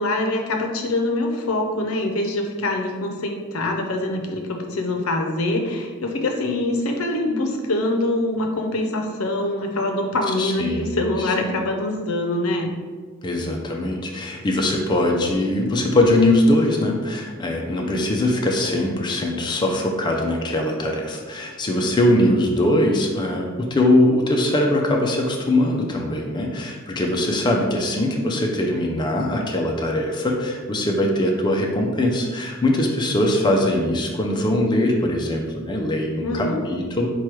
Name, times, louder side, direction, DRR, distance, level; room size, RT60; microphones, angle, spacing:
voice 1, 0.0-12.7 36.2-36.6, left 2 dB, 75° left, 3 dB, 0.6 m, -24 dB
voice 2, 10.4-11.3 13.2-37.1, left 1 dB, 20° left, 0 dB, 0.4 m, -21 dB
4.5 x 2.3 x 4.5 m, 1.5 s
head